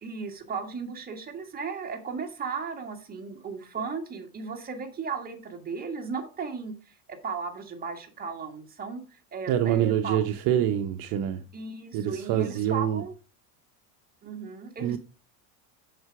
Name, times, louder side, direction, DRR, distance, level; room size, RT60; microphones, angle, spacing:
voice 1, 0.0-6.8 7.1-10.2 11.5-13.1 14.2-15.0, right 5 dB, 20° right, 1.9 m, -35 dB
voice 2, 9.5-11.4 11.9-13.0 14.8-15.0, right 10 dB, 50° right, 0.8 m, -26 dB
7.9 x 6.7 x 4.8 m
cardioid pair, 145°, 44 cm